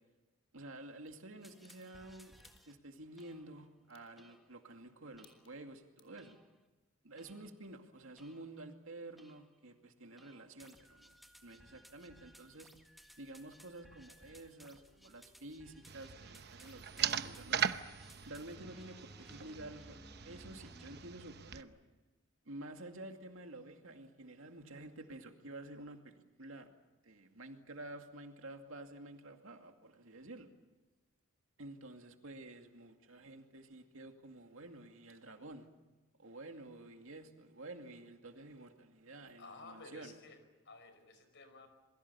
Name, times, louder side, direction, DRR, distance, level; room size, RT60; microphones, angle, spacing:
voice 1, 0.5-2.4 2.7-6.4 7.0-11.1 11.4-12.7 13.2-17.7 18.2-20.0 20.2-21.8 22.5-26.7 27.0-30.5 31.6-35.7 36.2-40.2, right 2 dB, 65° right, 5 dB, 2.4 m, -50 dB
sound 1, 1.1-1.2 1.6-1.8 2.4-2.6 3.1-3.3 3.9-4.1 4.6-4.8 5.1-5.6 6.0-6.2, left 6 dB, 25° left, 3.1 m, -63 dB
sound 2, 1.4-2.7 3.2-3.7 4.2-4.6 5.2-5.6 6.2-6.6 7.2-7.7 8.2-8.6 9.2-9.6 10.2-21.0, equal, ahead, 1.7 m, -61 dB
sound 3, 15.9-21.6, right 9 dB, 50° right, 0.9 m, -40 dB
voice 2, 39.4-40.4 40.6-41.7, left 3 dB, 55° left, 8 dB, 5.2 m, -53 dB
27.5 x 23.0 x 7.0 m, 1.1 s
head